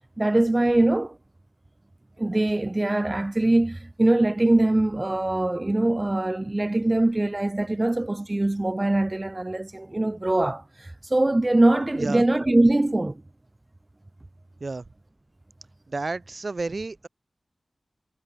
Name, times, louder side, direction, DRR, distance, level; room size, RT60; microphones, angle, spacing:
voice 1, 0.2-1.2 2.2-13.2, right 2 dB, 30° right, 1.0 m, -22 dB
voice 2, 15.9-17.1, right 3 dB, 60° right, 7.1 m, -31 dB
wide cardioid pair, 65°, 0 cm